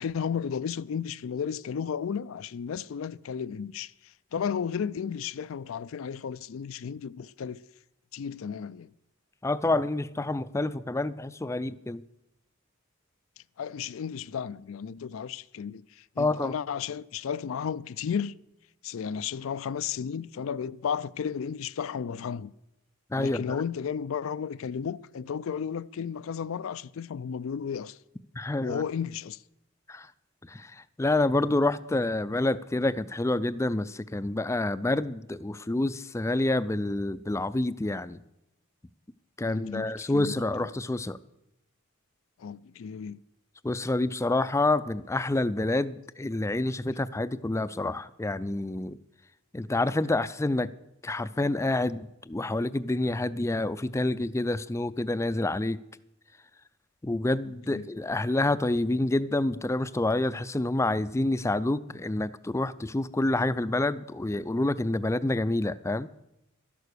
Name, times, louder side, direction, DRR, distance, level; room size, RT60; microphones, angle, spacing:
voice 1, 0.0-3.9 4.3-7.6 8.1-8.9 13.6-18.4 18.8-22.5 23.1-28.0 28.6-29.4 39.4-40.7 42.4-43.2 57.5-57.8, left 7 dB, 75° left, 0.4 m, -33 dB
voice 2, 9.4-12.0 16.2-16.5 23.1-23.6 28.4-28.8 29.9-30.1 30.5-30.7 31.0-38.2 39.4-41.2 43.6-49.0 49.5-50.7 51.0-55.8 57.0-66.1, left 2 dB, 15° left, 0.4 m, -28 dB
12.5 x 11.0 x 6.7 m
head